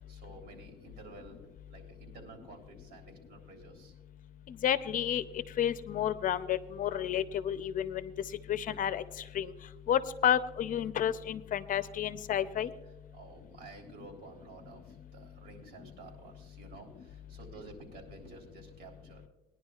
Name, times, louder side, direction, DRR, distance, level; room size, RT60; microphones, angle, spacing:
voice 1, 0.0-1.4 1.7-3.9 13.1-19.3, right 3 dB, 70° right, 2 dB, 3.4 m, -52 dB
voice 2, 4.5-5.2 5.6-8.1 8.5-9.0 9.3-9.5 9.9-12.7, left 10 dB, 55° left, 13 dB, 0.6 m, -30 dB
20.5 x 10.5 x 2.4 m, 1.1 s
cardioid pair, 110°, 17 cm